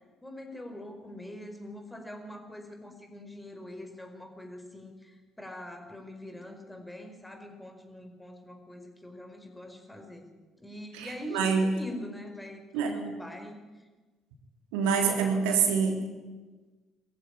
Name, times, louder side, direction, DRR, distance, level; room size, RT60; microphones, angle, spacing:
voice 1, 0.2-10.3 10.6-13.6, left 1 dB, 10° left, 4 dB, 4.8 m, -43 dB
voice 2, 10.9-11.7 12.7-13.0 14.7-16.0, right 6 dB, 75° right, 3 dB, 3.4 m, -26 dB
22.5 x 15.0 x 10.0 m, 1.3 s
hypercardioid pair, 50°, 0 cm